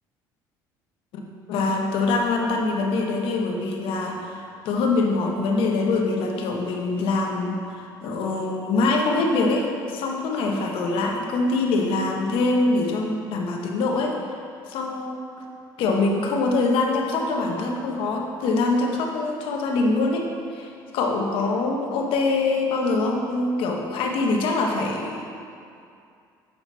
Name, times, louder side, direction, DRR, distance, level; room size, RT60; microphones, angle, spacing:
voice 1, 1.5-14.2 14.7-15.4 15.8-25.3, left 3 dB, 75° left, 1 dB, 1.1 m, -24 dB
7.7 x 5.7 x 4.6 m, 2.5 s
supercardioid pair, 85°, 9 cm